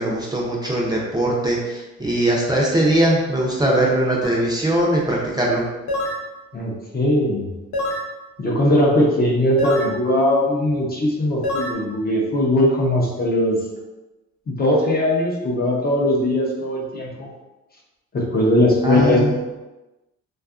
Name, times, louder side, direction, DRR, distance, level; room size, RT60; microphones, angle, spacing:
voice 1, 0.0-5.6 18.8-19.4, right 1 dB, 15° right, -4 dB, 0.5 m, -20 dB
sound 1, 4.2-4.4 5.9-6.3 7.7-8.1 9.6-10.0 11.4-11.7, left 1 dB, 75° left, 0.6 m, -25 dB
voice 2, 6.5-7.5 8.4-13.6 14.5-17.3 18.1-19.4, left 1 dB, 30° left, -2 dB, 0.6 m, -19 dB
2.6 x 2.4 x 2.4 m, 1.1 s
cardioid pair, 90°, 30 cm